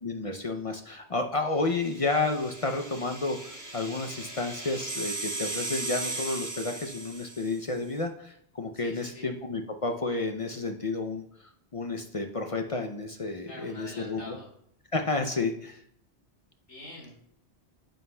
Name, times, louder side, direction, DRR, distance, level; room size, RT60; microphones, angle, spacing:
voice 1, 0.0-11.2 11.7-14.4 14.9-15.8, left 3 dB, 40° left, 5 dB, 0.5 m, -31 dB
sound 1, 1.7-7.7, right 3 dB, 15° right, 1.1 m, -37 dB
voice 2, 8.7-9.3 13.5-14.5 16.7-17.2, left 1 dB, 85° left, -3 dB, 2.5 m, -45 dB
9.4 x 7.8 x 2.2 m, 0.69 s
omnidirectional pair, 1.2 m